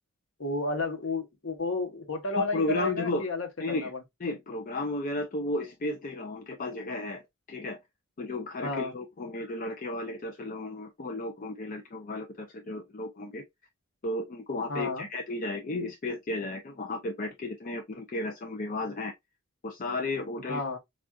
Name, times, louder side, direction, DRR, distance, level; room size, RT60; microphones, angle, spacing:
voice 1, 0.4-4.0 8.6-8.9 14.7-15.1 20.5-20.8, left 2 dB, 60° left, 0.9 m, -32 dB
voice 2, 2.4-3.3 3.6-3.9 4.2-7.2 7.5-7.8 8.2-13.4 14.0-19.1 19.6-20.6, left 2 dB, 40° left, 0.4 m, -33 dB
4.4 x 2.4 x 2.3 m
head